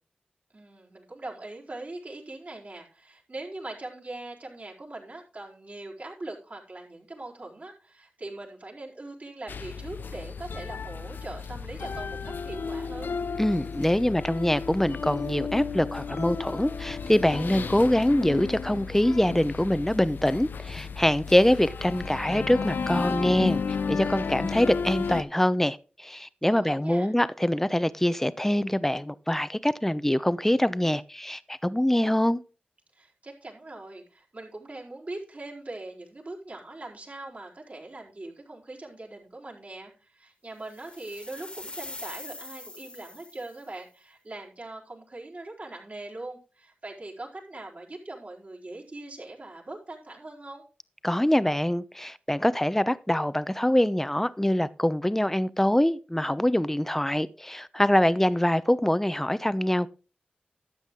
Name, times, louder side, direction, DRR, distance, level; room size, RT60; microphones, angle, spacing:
voice 1, 0.5-13.1 24.3-24.7 26.5-27.1 32.9-50.6, right 2 dB, 50° right, 4.6 m, -41 dB
sound 1, 9.5-25.2, left 5 dB, 85° left, 0.7 m, -33 dB
voice 2, 13.4-23.6 23.9-32.4 51.0-59.9, left 1 dB, 10° left, 0.8 m, -24 dB
sound 2, 40.7-43.7, left 2 dB, 30° left, 1.7 m, -43 dB
12.0 x 8.1 x 3.8 m
cardioid pair, 45°, 3 cm